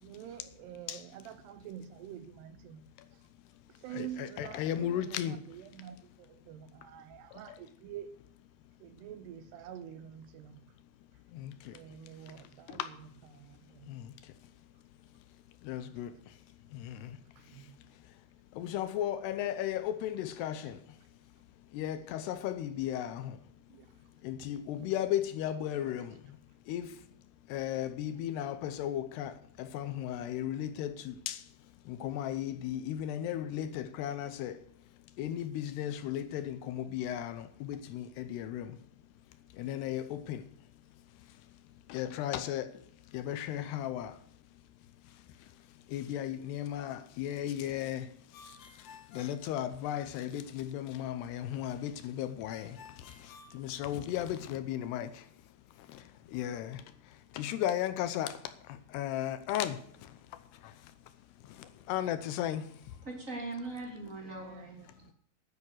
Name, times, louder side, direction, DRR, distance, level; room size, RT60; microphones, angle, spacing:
voice 1, 0.0-2.8 3.8-8.1 8.8-10.6 11.7-13.9 17.4-17.8 20.4-20.5 23.7-23.9 25.8-25.9 64.3-65.1, right 10 dB, 80° right, 2.7 m, -47 dB
voice 2, 3.9-5.4 7.3-7.6 11.3-11.8 12.7-12.9 13.9-14.3 15.6-16.3 16.7-17.2 17.5-17.6 18.5-21.0 21.7-23.4 24.2-26.4 26.7-27.0 27.5-31.5 31.9-34.6 35.2-38.8 39.5-40.5 41.9-42.8 43.1-44.2 45.9-55.3 55.8-60.2 60.6-60.9 61.4-62.8, left 11 dB, 80° left, 2.7 m, -36 dB
Ringtone, 48.3-50.3 52.5-54.4, left 4 dB, 65° left, 3.9 m, -55 dB
voice 3, 63.0-65.1, right 2 dB, 20° right, 2.5 m, -41 dB
11.0 x 10.5 x 6.4 m
omnidirectional pair, 5.0 m